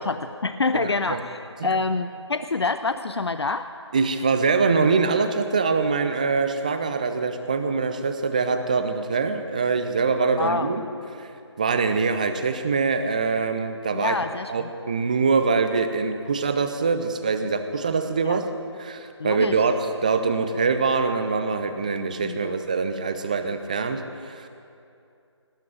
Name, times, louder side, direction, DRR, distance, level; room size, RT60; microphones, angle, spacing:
voice 1, 0.0-3.7 10.4-10.7 13.9-14.7 18.2-18.4 19.2-19.6 22.2-22.6, left 3 dB, 65° left, 11 dB, 0.6 m, -27 dB
voice 2, 0.7-1.2 1.6-1.7 3.9-10.8 11.2-11.3 11.6-14.2 14.5-18.4 18.8-24.5, right 4 dB, 15° right, 9 dB, 0.5 m, -24 dB
18.5 x 8.4 x 9.0 m, 2.6 s
figure-of-eight pair, 160°, 15 cm